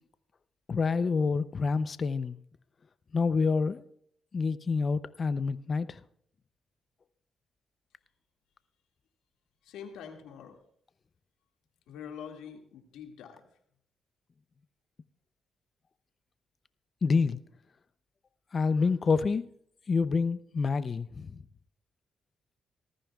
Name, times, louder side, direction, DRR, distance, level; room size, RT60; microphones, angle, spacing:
voice 1, 0.7-2.4 3.1-3.9 4.3-6.0 17.0-17.4 18.5-19.5 19.9-21.4, left 4 dB, 45° left, 0.5 m, -27 dB
voice 2, 9.6-10.6 11.9-13.5, left 7 dB, 85° left, 2.0 m, -45 dB
19.0 x 14.0 x 2.3 m
cardioid pair, 75°, 0 cm